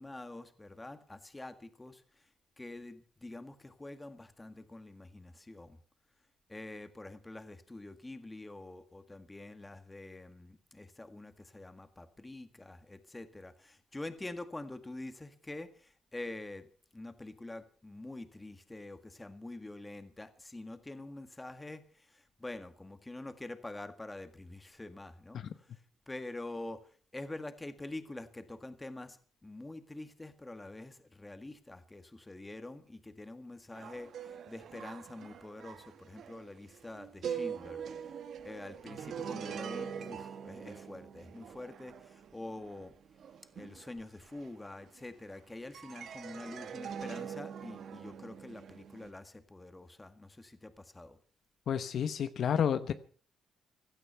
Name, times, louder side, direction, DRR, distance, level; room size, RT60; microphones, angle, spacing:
voice 1, 0.0-2.3 2.6-5.8 6.5-16.7 16.9-25.8 26.1-38.2 38.4-42.9 43.5-51.2, left 2 dB, 15° left, 10 dB, 1.7 m, -46 dB
sound 1, 33.7-45.3 45.7-49.1, right 7 dB, 65° right, 1.3 m, -43 dB
voice 2, 51.7-52.9, left 8 dB, 65° left, 11 dB, 0.9 m, -31 dB
16.5 x 12.5 x 5.6 m, 0.42 s
cardioid pair, 90°, 0 cm